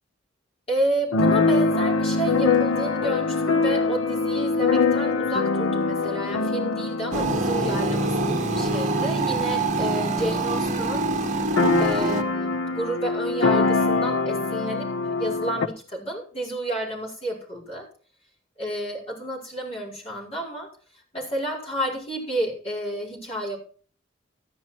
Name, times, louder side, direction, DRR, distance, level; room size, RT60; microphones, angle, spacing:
voice 1, 0.7-11.0 11.8-14.9 15.2-17.9 18.6-20.7 21.1-23.6, right 1 dB, 30° left, -2 dB, 5.5 m, -30 dB
Keyboard (musical), 1.1-10.7 10.9-11.0 11.2-15.7, left 3 dB, 90° left, 1.1 m, -24 dB
sound 1, 7.1-12.2, right 2 dB, 40° right, 1.2 m, -25 dB
13.5 x 10.5 x 4.4 m, 0.42 s
head